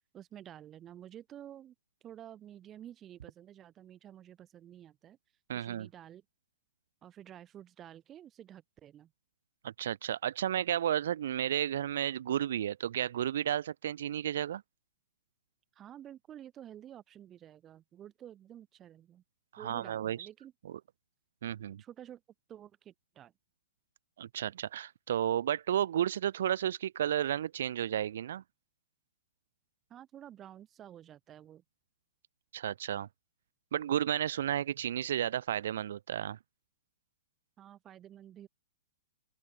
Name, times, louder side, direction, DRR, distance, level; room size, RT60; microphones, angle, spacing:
voice 1, 0.1-1.7 2.0-5.2 5.5-6.2 7.0-9.1 15.8-19.2 19.6-20.5 21.8-22.2 22.5-23.3 29.9-31.6 37.6-38.5, right 11 dB, 20° right, 3.7 m, -51 dB
voice 2, 5.5-5.9 9.6-14.6 19.5-20.2 21.4-21.8 24.2-28.4 32.5-33.1 33.7-36.4, right 10 dB, 65° right, 1.1 m, -32 dB
open air
hypercardioid pair, 150°, 0 cm